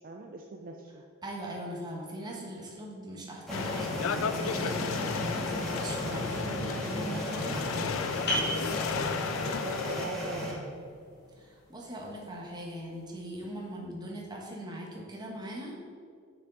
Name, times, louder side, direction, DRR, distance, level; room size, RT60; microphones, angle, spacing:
voice 1, 0.0-1.0 8.6-10.9, right 3 dB, 45° right, 2 dB, 0.4 m, -42 dB
voice 2, 1.2-7.9 11.4-15.7, right 1 dB, 20° right, -2 dB, 1.3 m, -40 dB
sound 1, 3.5-10.1, left 6 dB, 85° left, 0.4 m, -34 dB
sound 2, 3.5-10.5, left 1 dB, ahead, 1.7 m, -35 dB
sound 3, 8.3-13.6, equal, 55° left, 1.7 m, -39 dB
6.7 x 6.2 x 4.0 m, 2.2 s
head